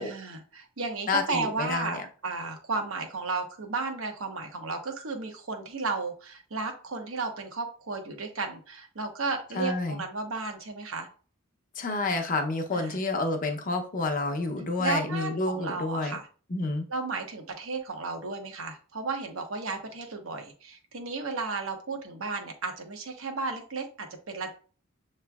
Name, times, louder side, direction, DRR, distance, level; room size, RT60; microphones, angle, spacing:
voice 1, 0.0-11.1 12.7-13.0 14.8-16.2 16.9-24.5, right 3 dB, 70° right, 4 dB, 1.0 m, -34 dB
voice 2, 1.1-2.0 9.5-10.0 11.8-16.2 16.5-16.8, left 3 dB, 40° left, 5 dB, 0.7 m, -29 dB
6.9 x 3.1 x 2.3 m, 0.39 s
head